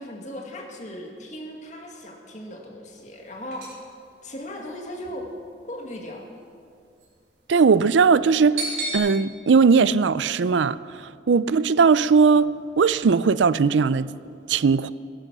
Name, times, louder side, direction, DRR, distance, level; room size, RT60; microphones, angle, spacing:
voice 1, 0.0-3.7 4.2-5.3 5.7-6.3, left 1 dB, 40° left, 1 dB, 1.9 m, -37 dB
sound 1, 2.9-9.0, right 3 dB, 65° right, 4.4 m, -37 dB
voice 2, 7.5-8.6 8.9-10.8 11.3-12.5 12.8-14.1 14.5-14.9, right 5 dB, 85° right, 16 dB, 0.5 m, -18 dB
18.5 x 11.0 x 6.1 m, 2.4 s
head